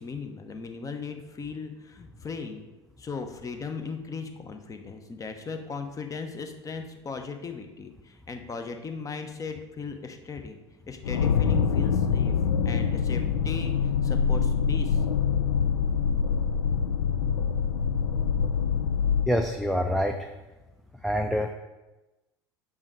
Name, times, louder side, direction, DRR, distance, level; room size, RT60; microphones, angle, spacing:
voice 1, 0.0-2.7 3.0-10.6 10.9-12.4 12.6-13.7 14.0-15.0 17.6-17.7, left 5 dB, 25° left, 6 dB, 0.9 m, -37 dB
sound 1, 11.0-19.3, left 6 dB, 75° left, 0.4 m, -25 dB
voice 2, 19.3-20.3 21.0-21.5, equal, ahead, 4 dB, 0.5 m, -26 dB
6.2 x 5.5 x 4.7 m, 1.1 s
figure-of-eight pair, 70°, 14 cm